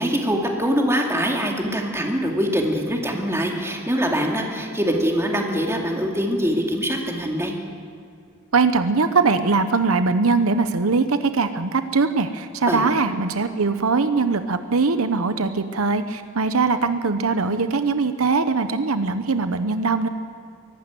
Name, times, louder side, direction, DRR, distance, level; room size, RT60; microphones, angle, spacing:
voice 1, 0.0-7.5 12.7-12.8, equal, 15° right, 1 dB, 2.4 m, -23 dB
voice 2, 8.5-20.1, right 4 dB, 80° right, 10 dB, 0.9 m, -21 dB
23.0 x 12.5 x 9.2 m, 2.3 s
head